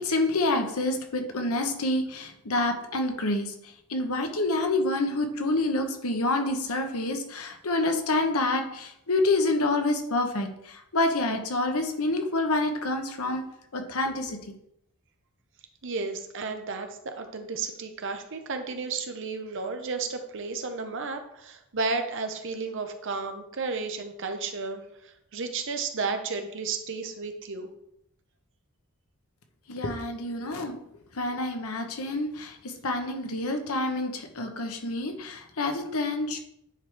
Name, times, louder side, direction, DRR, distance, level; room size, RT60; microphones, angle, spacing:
voice 1, 0.0-3.5 3.9-13.5 13.7-14.5 29.7-30.8 31.1-36.4, left 2 dB, 75° left, 5 dB, 1.1 m, -27 dB
voice 2, 15.8-27.7, right 4 dB, 60° right, 6 dB, 0.9 m, -33 dB
9.7 x 4.7 x 3.5 m, 0.77 s
head